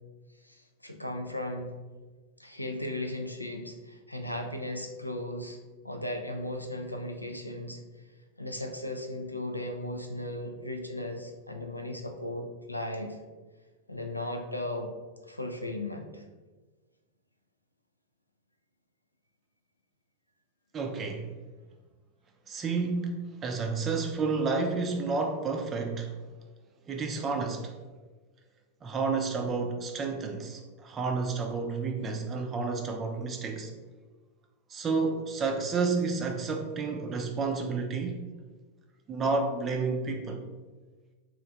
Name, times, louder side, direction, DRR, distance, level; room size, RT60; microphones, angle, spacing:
voice 1, 0.4-1.8 2.4-5.6 5.8-7.8 8.4-13.2 13.9-14.9 15.2-16.2, left 1 dB, 85° left, 4 dB, 0.4 m, -36 dB
voice 2, 20.7-21.3 22.5-26.1 26.9-27.7 28.8-33.7 34.7-38.2 39.1-40.4, right 4 dB, 25° right, 3 dB, 0.4 m, -30 dB
3.1 x 2.5 x 3.8 m, 1.3 s
figure-of-eight pair, 90°, 0 cm